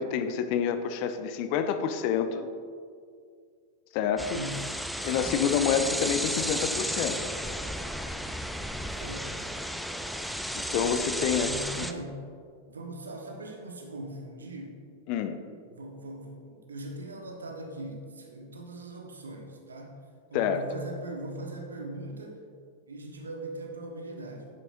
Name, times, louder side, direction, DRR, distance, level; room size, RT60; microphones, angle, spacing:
voice 1, 0.0-2.5 3.9-4.4 5.0-7.2 10.5-11.5 11.8-11.9 15.1-15.4 20.3-20.6, left 8 dB, 45° left, 9 dB, 0.6 m, -28 dB
sound 1, 4.2-11.9, equal, ahead, 0.4 m, -33 dB
voice 2, 4.3-5.3 9.0-9.4 11.2-12.2 12.6-14.8 15.7-20.0 20.3-22.4 22.9-24.5, right 1 dB, 70° right, 2 dB, 1.3 m, -40 dB
11.0 x 9.0 x 2.6 m, 2.2 s
figure-of-eight pair, 90°, 0 cm